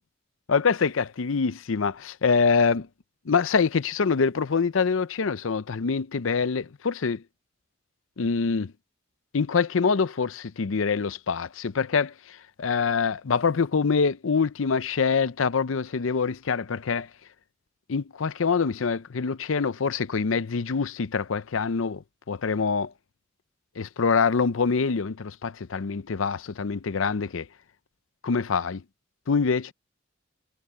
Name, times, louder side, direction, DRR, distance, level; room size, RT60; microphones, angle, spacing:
voice 1, 0.5-2.9 3.3-7.2 8.2-8.7 9.3-12.1 12.6-17.1 17.9-22.9 23.8-27.5 28.2-28.8 29.3-29.7, left 5 dB, 75° left, 0.6 m, -25 dB
head